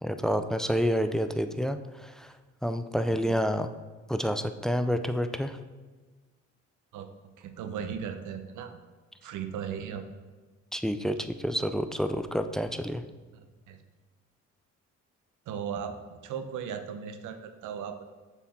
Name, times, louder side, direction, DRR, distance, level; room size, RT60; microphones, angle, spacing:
voice 1, 0.0-2.3 2.6-3.7 4.1-5.6 10.7-13.0, equal, ahead, 9 dB, 0.3 m, -29 dB
voice 2, 3.1-3.4 6.9-7.1 7.4-8.8 9.2-10.1 13.3-13.8 15.5-16.0 16.2-18.1, right 7 dB, 80° right, 8 dB, 0.7 m, -37 dB
7.0 x 4.5 x 4.2 m, 1.3 s
cardioid pair, 90°, 30 cm